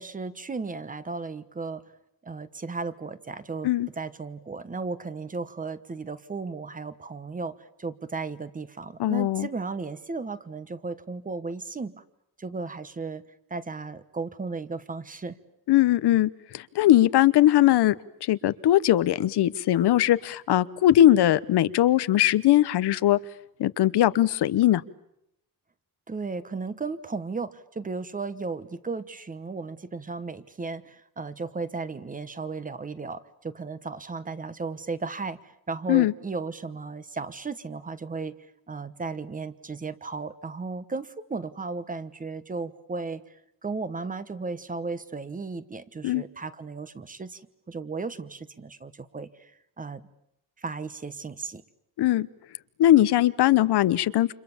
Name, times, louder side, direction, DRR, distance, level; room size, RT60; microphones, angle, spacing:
voice 1, 0.0-1.8 2.2-3.7 4.0-11.9 12.4-13.2 13.5-15.4 26.1-38.4 38.7-43.2 43.6-47.4 47.7-49.5 49.8-50.0 50.6-51.6, right 4 dB, 20° right, 13 dB, 1.2 m, -35 dB
voice 2, 9.0-9.5 15.7-17.9 18.2-23.2 23.6-24.8 35.9-36.1 46.0-46.2 52.0-52.3 52.8-54.3, left 13 dB, 85° left, 15 dB, 1.1 m, -20 dB
30.0 x 27.5 x 7.2 m, 0.81 s
wide cardioid pair, 180°, 39 cm